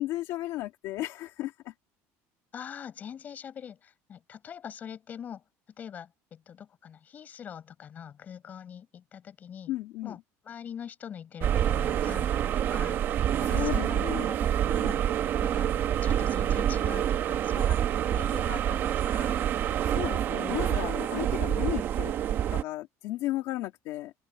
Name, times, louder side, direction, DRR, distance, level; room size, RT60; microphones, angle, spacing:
voice 1, 0.0-1.7 9.7-10.2 13.4-14.3 19.8-22.1 22.5-24.1, left 16 dB, 55° left, 1.7 m, -34 dB
voice 2, 2.5-5.4 5.8-9.7 10.0-10.2 10.4-13.0 13.4-14.0 14.3-15.0 15.4-15.7 16.0-17.8 18.1-19.4, left 8 dB, 25° left, 5.5 m, -43 dB
sound 1, 11.4-22.6, right 10 dB, 35° right, 1.1 m, -27 dB
open air
cardioid pair, 180°, 6 cm